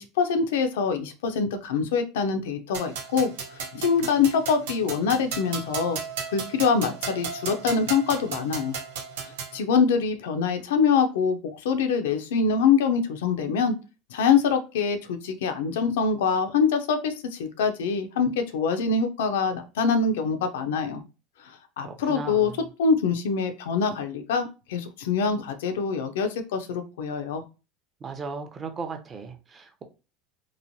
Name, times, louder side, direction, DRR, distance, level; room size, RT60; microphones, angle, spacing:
voice 1, 0.0-6.0 6.3-8.8 9.2-13.7 14.1-21.0 21.8-22.5 22.8-27.4, left 5 dB, 90° left, 0.5 m, -24 dB
sound 1, 2.7-9.6, right 6 dB, 85° right, 0.7 m, -35 dB
voice 2, 21.8-22.6 28.0-29.8, right 4 dB, 30° right, 0.6 m, -37 dB
3.0 x 2.1 x 2.6 m
supercardioid pair, 120°, 0 cm